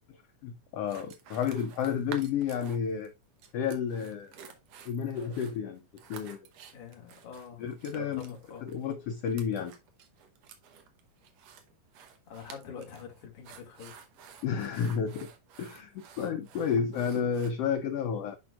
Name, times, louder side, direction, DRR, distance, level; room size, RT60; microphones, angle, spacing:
voice 1, 0.4-3.1 3.5-4.3 4.9-5.8 6.1-6.4 7.6-8.4 8.6-9.7 14.4-15.3 15.6-18.4, left 7 dB, 85° left, 1.3 m, -31 dB
sound 1, 0.9-3.1 3.4-17.5, right 7 dB, 65° right, 2.0 m, -51 dB
voice 2, 6.7-8.7 12.3-14.0, left 6 dB, 50° left, 2.6 m, -46 dB
10.5 x 4.5 x 2.3 m
omnidirectional pair, 3.6 m